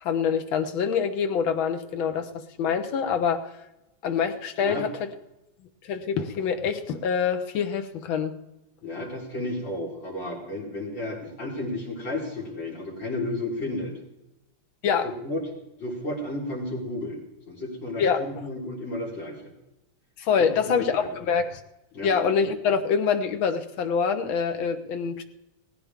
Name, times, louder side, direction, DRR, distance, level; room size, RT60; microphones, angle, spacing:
voice 1, 0.0-3.5 4.0-5.1 5.8-8.4 14.8-15.1 18.0-18.2 20.2-21.6 22.0-25.2, left 6 dB, 85° left, 7 dB, 1.8 m, -25 dB
voice 2, 8.8-13.9 15.2-15.4 15.8-19.5 20.4-21.1 21.9-22.1, left 1 dB, 70° left, -4 dB, 4.9 m, -33 dB
18.0 x 15.0 x 3.6 m, 0.95 s
omnidirectional pair, 2.1 m